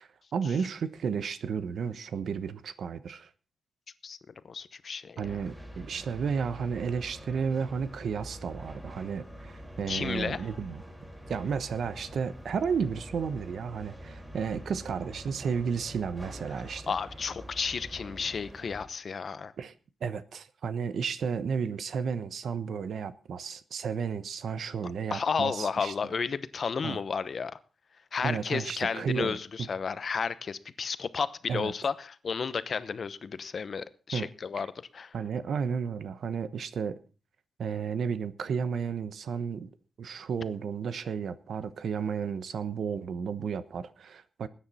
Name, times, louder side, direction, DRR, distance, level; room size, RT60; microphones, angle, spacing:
voice 1, 0.0-3.3 5.2-10.8 11.3-16.9 19.6-19.7 20.0-25.9 26.8-27.0 28.2-29.7 31.5-31.7 34.1-34.3 35.1-37.0 37.6-39.7 40.0-44.5, right 6 dB, 80° right, 1.1 m, -33 dB
voice 2, 4.5-5.2 9.9-10.4 16.9-19.5 25.1-27.6 28.1-34.7 34.9-35.1, left 5 dB, 55° left, 0.8 m, -32 dB
sound 1, 5.2-18.9, equal, 10° right, 4.8 m, -45 dB
20.0 x 9.6 x 4.2 m
wide cardioid pair, 130°, 0 cm